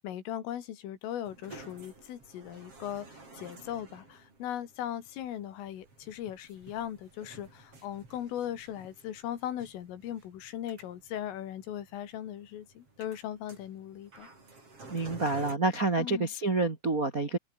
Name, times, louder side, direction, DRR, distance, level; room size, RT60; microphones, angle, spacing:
voice 1, 0.0-14.3 16.0-16.3, left 11 dB, 80° left, 4.9 m, -38 dB
sound 1, 1.2-15.6, right 3 dB, 30° right, 7.9 m, -53 dB
voice 2, 14.9-17.4, right 3 dB, 55° right, 0.9 m, -28 dB
omnidirectional pair, 5.8 m